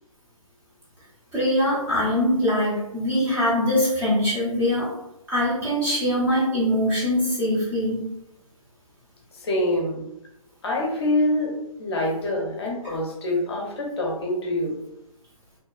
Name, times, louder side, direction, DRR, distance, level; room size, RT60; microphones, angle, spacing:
voice 1, 1.3-4.9 5.3-8.0, left 1 dB, 10° right, -8 dB, 0.6 m, -22 dB
voice 2, 9.3-10.1 10.6-11.5 11.8-14.7, left 1 dB, 45° left, -1 dB, 0.6 m, -25 dB
2.7 x 2.3 x 2.3 m, 0.85 s
figure-of-eight pair, 145°, 19 cm